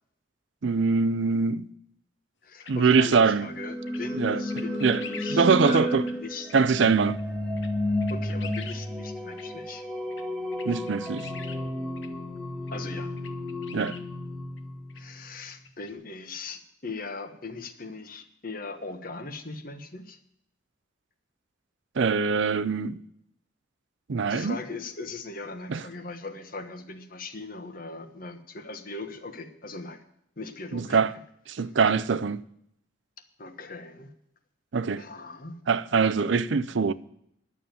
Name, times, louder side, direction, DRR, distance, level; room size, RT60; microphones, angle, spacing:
voice 1, 0.6-1.7 2.7-3.5 4.1-5.0 5.3-6.0 6.5-7.2 10.6-11.3 13.7-14.0 22.0-23.0 24.1-24.6 25.7-25.8 30.7-31.1 31.5-32.4 34.7-35.0 35.7-36.9, right 5 dB, 70° right, 0.5 m, -23 dB
voice 2, 2.4-6.5 8.1-9.8 12.7-13.1 14.9-20.2 24.3-30.0 30.4-31.0 33.4-34.1 35.0-35.5, left 3 dB, 45° left, 1.3 m, -39 dB
sound 1, 2.6-2.7 3.0-3.2 3.9-4.0 4.5-5.4 6.0-6.1 6.5-6.6 7.2-7.3 7.6-7.7 8.0-8.8 9.3-9.4 10.1-10.2 10.5-11.6 12.0-12.1 12.7-12.8 13.2-14.0 14.6-14.7 14.9-15.0 15.3-15.9, left 7 dB, 70° left, 1.2 m, -43 dB
sound 2, 3.4-15.3, left 1 dB, 5° left, 1.6 m, -32 dB
11.0 x 7.2 x 9.1 m
head